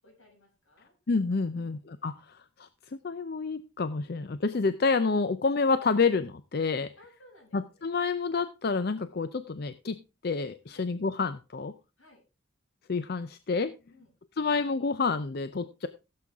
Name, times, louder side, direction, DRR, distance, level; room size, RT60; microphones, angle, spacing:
voice 1, 0.0-0.9 1.4-1.8 7.0-8.0 10.6-10.9 12.0-12.2 13.9-14.1, left 1 dB, 75° left, 0 dB, 6.8 m, -59 dB
voice 2, 1.1-6.9 7.5-11.7 12.9-13.7 14.4-15.9, left 4 dB, 50° left, 12 dB, 0.5 m, -29 dB
15.5 x 7.6 x 3.5 m, 0.29 s
head